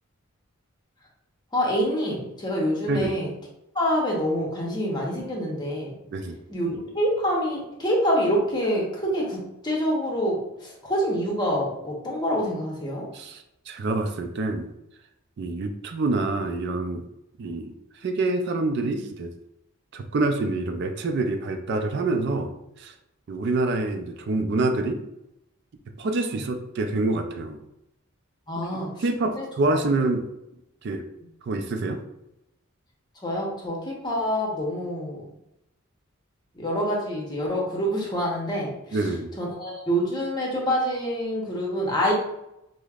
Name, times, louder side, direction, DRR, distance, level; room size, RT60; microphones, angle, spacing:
voice 1, 1.5-3.3 3.7-5.9 6.5-13.1 28.5-29.0 29.4-29.5 33.2-35.2 36.5-39.0 39.4-42.1, equal, 20° left, -2 dB, 0.8 m, -26 dB
voice 2, 13.1-14.7 15.4-17.1 17.4-17.7 18.0-19.3 19.9-22.5 22.8-22.9 23.3-25.0 26.0-27.6 29.0-30.2 30.8-31.0 31.4-32.0 38.9-39.3, right 2 dB, 55° right, 6 dB, 0.3 m, -26 dB
4.9 x 2.0 x 2.3 m, 0.85 s
head